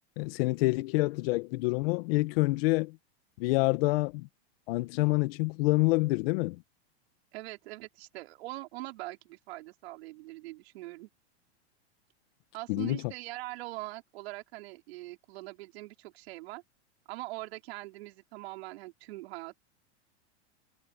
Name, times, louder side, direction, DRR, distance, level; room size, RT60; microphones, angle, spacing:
voice 1, 0.2-3.0 3.4-4.3 4.7-6.6 12.7-13.0, left 23 dB, 55° left, 1.8 m, -27 dB
voice 2, 7.3-11.1 12.5-16.6 17.1-19.6, right 19 dB, 65° right, 4.7 m, -42 dB
hypercardioid pair, 120°, 34 cm